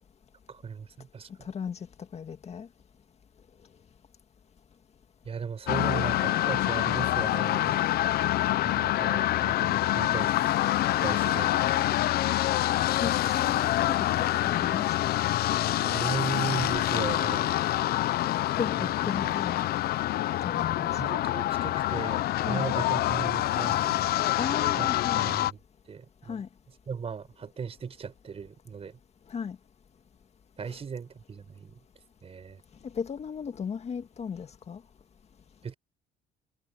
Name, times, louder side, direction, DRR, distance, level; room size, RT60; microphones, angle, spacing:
voice 1, 0.5-1.3 5.2-7.8 8.6-10.3 11.0-11.6 12.3-12.4 15.8-17.5 18.8-18.9 19.2-19.3 20.8-24.1 24.8-24.9 25.2-25.6 25.9-26.4 26.9-29.0 30.6-31.8 32.2-32.6 35.6-35.7, right 6 dB, 35° right, 5.0 m, -37 dB
voice 2, 1.5-1.8 2.1-2.7 13.0-15.1 18.6-18.8 19.0-19.6 20.4-20.9 22.4-22.6 24.4-25.3 26.3-26.5 29.3-29.6 30.7-30.8 33.0-34.8, left 6 dB, 40° left, 1.9 m, -35 dB
sound 1, 5.7-25.5, left 14 dB, 65° left, 0.7 m, -26 dB
cardioid pair, 110°, 17 cm